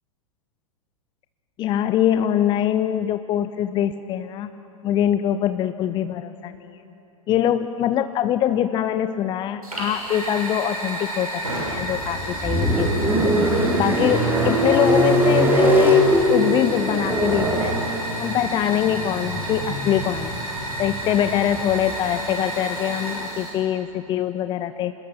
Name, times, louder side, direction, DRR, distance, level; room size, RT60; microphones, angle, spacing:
voice 1, 1.6-4.5 4.8-6.8 7.3-13.3 13.8-16.0 16.3-17.8 18.2-20.4 20.8-24.9, left 11 dB, 25° left, 11 dB, 0.6 m, -23 dB
Fire, 9.6-23.5, right 1 dB, 85° right, 7.0 m, -31 dB
sound 1, 11.7-21.9, equal, 10° right, 3.9 m, -22 dB
26.5 x 21.0 x 6.0 m, 2.9 s
figure-of-eight pair, 100°, 18 cm